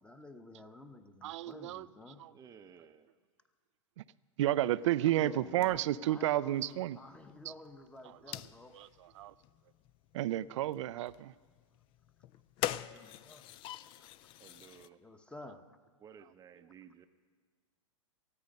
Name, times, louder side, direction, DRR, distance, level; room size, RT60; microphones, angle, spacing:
voice 1, 0.0-2.2 5.0-8.9 12.9-13.4 15.0-15.6, left 2 dB, 5° left, 8 dB, 1.0 m, -51 dB
voice 2, 1.2-1.9 2.2-2.3 4.0-4.1 4.4-7.0 7.4-7.5 8.0-8.4 8.7-9.3 10.1-11.3, right 13 dB, 65° right, 17 dB, 0.4 m, -32 dB
voice 3, 2.3-3.1 14.4-15.0 16.0-17.1, right 7 dB, 20° right, 9 dB, 0.7 m, -55 dB
sound 1, 4.5-14.9, left 13 dB, 30° left, 0.4 m, -46 dB
19.5 x 14.0 x 5.3 m, 1.5 s
hypercardioid pair, 125°, 17 cm